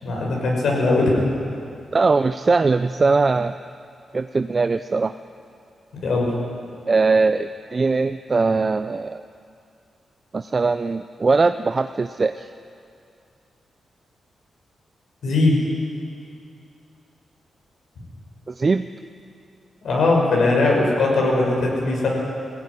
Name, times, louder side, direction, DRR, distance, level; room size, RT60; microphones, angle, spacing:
voice 1, 0.0-1.2 6.0-6.3 15.2-15.5 19.8-22.1, left 2 dB, 75° left, -2 dB, 6.2 m, -19 dB
voice 2, 1.9-3.6 4.1-5.1 6.9-9.2 10.3-12.5 18.5-18.9, right 4 dB, 35° right, 10 dB, 0.5 m, -20 dB
19.5 x 16.0 x 9.8 m, 2.4 s
cardioid pair, 110°, 0 cm